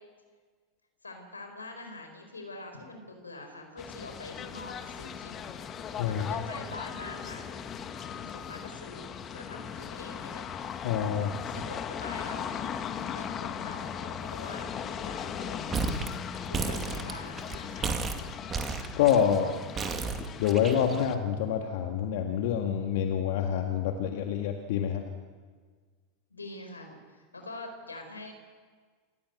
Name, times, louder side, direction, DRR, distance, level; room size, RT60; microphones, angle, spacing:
voice 1, 1.0-5.6 6.1-7.5 7.9-10.4 11.1-14.7 15.0-16.2 16.5-17.9 26.3-28.3, left 2 dB, 90° left, 5 dB, 4.8 m, -45 dB
sound 1, 3.8-21.2, left 8 dB, 35° left, 1.7 m, -38 dB
voice 2, 10.8-11.3 19.0-19.6 20.4-25.0, left 8 dB, 60° left, 4 dB, 1.8 m, -27 dB
sound 2, 15.7-16.1 16.3-17.6 17.8-19.2 19.8-21.0, right 5 dB, 25° right, 2.4 m, -32 dB
29.0 x 15.0 x 8.3 m, 1.5 s
figure-of-eight pair, 85°, 0 cm